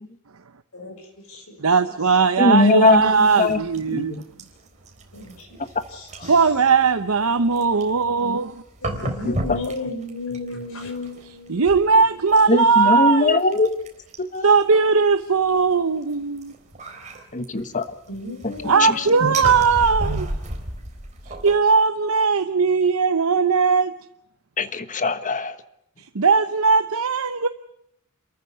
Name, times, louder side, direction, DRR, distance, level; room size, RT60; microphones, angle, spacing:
voice 1, 0.7-1.9 2.6-2.8 3.1-3.2 5.1-5.6 5.9-6.4 8.8-12.6 18.1-19.4 20.0-20.2, left 2 dB, 80° left, 5.8 m, -35 dB
voice 2, 1.6-4.2 6.3-8.6 11.5-13.4 14.4-16.5 18.6-20.3 21.4-23.9 26.1-27.5, right 5 dB, 70° right, 0.8 m, -19 dB
voice 3, 2.4-3.6 3.9-4.2 9.0-9.6 12.5-13.8 14.2-14.6 17.3-17.8 18.4-19.1 24.6-25.6, left 3 dB, 35° left, 1.3 m, -21 dB
sound 1, 2.9-14.6 15.4-21.6, right 1 dB, 35° right, 4.0 m, -34 dB
28.0 x 14.0 x 9.4 m
head